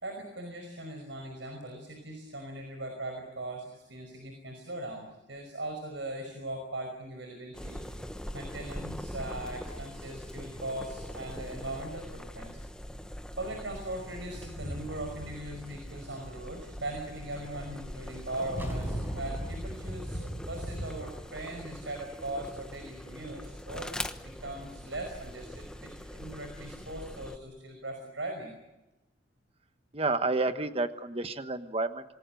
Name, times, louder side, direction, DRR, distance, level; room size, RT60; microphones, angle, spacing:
voice 1, 0.0-7.8 8.3-12.6 13.4-23.9 24.2-28.5, right 1 dB, 70° right, 4 dB, 5.5 m, -40 dB
sound 1, 7.5-27.4, equal, 5° left, 1.1 m, -43 dB
sound 2, 12.5-12.6 13.4-13.5 13.9-20.9, equal, 40° left, 7.5 m, -42 dB
sound 3, 18.6-22.0, equal, 10° right, 5.1 m, -39 dB
voice 2, 29.9-32.0, right 3 dB, 30° right, 9 dB, 1.2 m, -30 dB
27.5 x 20.0 x 7.8 m, 1.0 s
head